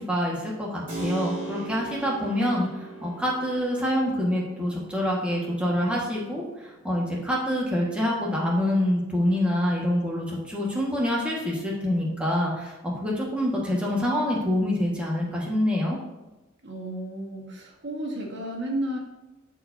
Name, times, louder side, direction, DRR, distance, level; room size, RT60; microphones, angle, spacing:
voice 1, 0.0-2.7 3.0-16.0, left 1 dB, 5° right, -4 dB, 1.7 m, -26 dB
Keyboard (musical), 0.9-9.4, right 2 dB, 40° right, 2.5 m, -41 dB
voice 2, 16.6-19.0, right 1 dB, 55° right, -1 dB, 1.6 m, -32 dB
12.5 x 4.6 x 2.8 m, 1.0 s
head